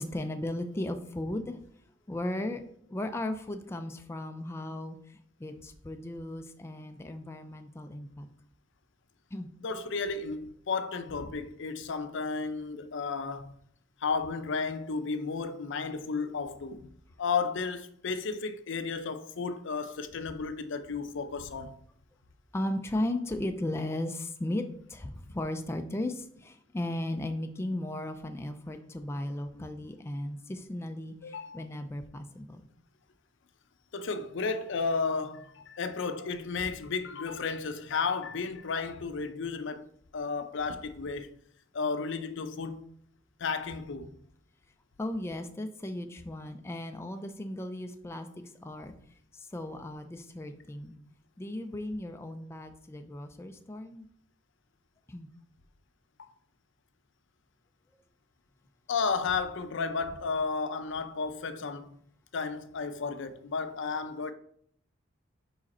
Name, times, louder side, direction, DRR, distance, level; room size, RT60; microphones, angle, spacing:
voice 1, 0.0-1.6 2.1-2.6 2.9-5.0 5.4-8.3 9.3-9.5 22.5-24.6 24.9-32.7 45.0-48.3 48.6-48.9 49.3-50.9 51.4-54.0 55.1-55.3, left 1 dB, 15° left, 0.3 m, -36 dB
voice 2, 9.6-13.5 14.0-16.9 17.2-21.8 31.2-31.7 33.9-39.9 40.1-41.3 41.7-42.8 43.4-44.1 58.9-62.0 62.3-64.3, left 4 dB, 65° left, 0.5 m, -33 dB
5.0 x 4.9 x 4.2 m
head